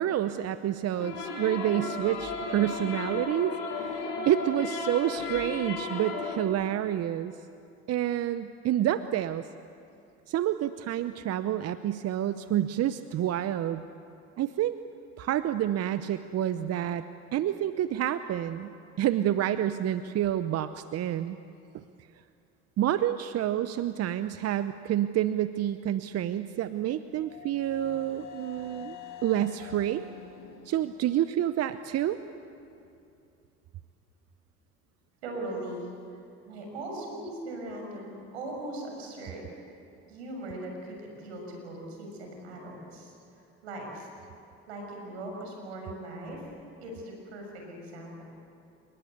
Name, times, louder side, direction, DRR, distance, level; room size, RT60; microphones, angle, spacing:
voice 1, 0.0-7.3 7.9-9.5 10.3-13.8 14.4-14.7 15.2-17.0 17.3-21.4 21.7-21.8 22.8-29.0 29.2-30.0 30.7-32.2, right 11 dB, 50° right, 12 dB, 0.9 m, -28 dB
sound 1, 1.0-6.5, left 3 dB, 80° left, 7.1 m, -34 dB
sound 2, 26.5-32.2, left 6 dB, 60° left, 4.6 m, -48 dB
voice 2, 35.2-35.9 36.5-39.4 40.1-43.1 43.6-44.1 44.7-46.5 46.8-48.2, right 1 dB, 90° right, 1 dB, 6.7 m, -39 dB
29.5 x 19.5 x 8.2 m, 2.6 s
hypercardioid pair, 65°, 32 cm